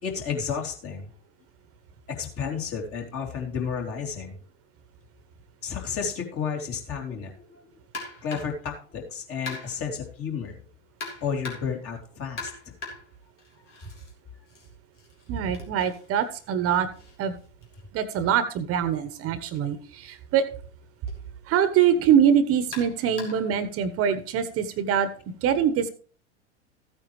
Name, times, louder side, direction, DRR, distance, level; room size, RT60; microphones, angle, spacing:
voice 1, 0.0-1.1 2.1-4.4 5.6-7.7 8.2-10.6 11.2-12.5, left 6 dB, 40° left, 1 dB, 3.2 m, -32 dB
sound 1, 7.9-8.6 9.5-9.9 11.0-11.8 12.4-14.1 14.5-18.3 19.4-19.6 20.0-20.1 21.1-21.2 22.7-23.5, left 3 dB, 80° left, 3.6 m, -41 dB
voice 2, 15.3-16.9 17.2-17.3 17.9-20.4 21.5-25.1 25.4-25.9, right 8 dB, 40° right, 13 dB, 1.2 m, -23 dB
14.5 x 9.0 x 3.2 m, 0.40 s
hypercardioid pair, 90°, 35 cm